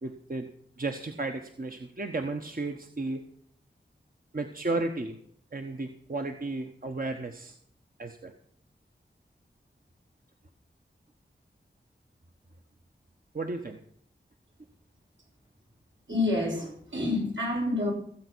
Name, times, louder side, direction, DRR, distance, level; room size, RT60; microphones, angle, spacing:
voice 1, 0.0-0.5 0.8-3.2 4.3-5.2 5.5-7.5 8.0-8.3 13.3-13.8, right 2 dB, 50° right, 5 dB, 1.2 m, -33 dB
voice 2, 16.1-17.9, left 2 dB, 80° right, -2 dB, 6.2 m, -28 dB
16.0 x 8.2 x 6.2 m, 0.64 s
wide cardioid pair, 65°, 19 cm